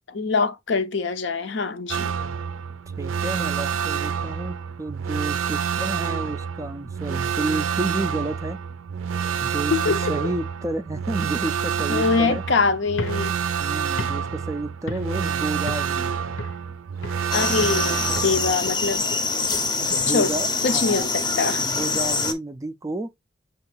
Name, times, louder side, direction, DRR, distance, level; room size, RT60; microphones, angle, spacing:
voice 1, 0.1-2.1 9.7-10.3 11.9-13.4 17.3-19.0 20.1-20.3 20.6-21.6, left 4 dB, 60° left, 0.6 m, -24 dB
sound 1, 1.9-18.5, right 7 dB, 85° right, 0.4 m, -28 dB
voice 2, 3.0-8.6 9.4-12.5 13.6-16.1 19.9-21.1 21.5-23.1, right 2 dB, 15° right, 0.3 m, -31 dB
sound 2, 12.9-15.3 15.7-16.0 16.4-17.3 17.6-17.9 18.2-21.3, left 2 dB, 80° left, 0.9 m, -38 dB
sound 3, 17.3-22.3, left 4 dB, 20° left, 0.6 m, -25 dB
6.7 x 2.4 x 3.3 m
head